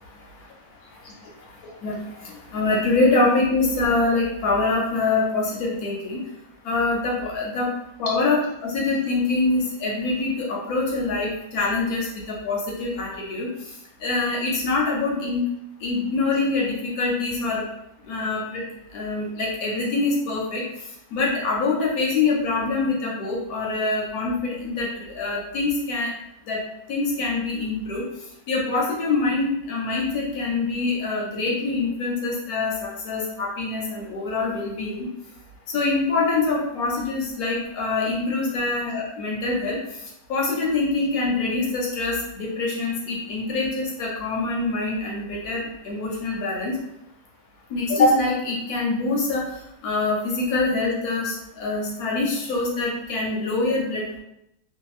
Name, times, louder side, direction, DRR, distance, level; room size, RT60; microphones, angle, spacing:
voice 1, 1.8-6.2 6.6-7.7 8.0-13.5 14.0-15.4 15.8-17.6 18.1-18.6 18.9-20.6 21.1-26.1 26.5-26.6 26.9-28.0 28.5-35.1 35.7-39.8 40.3-46.8 47.7-49.5 49.8-54.2, left 3 dB, 70° left, -3 dB, 1.0 m, -24 dB
2.7 x 2.5 x 2.4 m, 0.82 s
omnidirectional pair, 1.9 m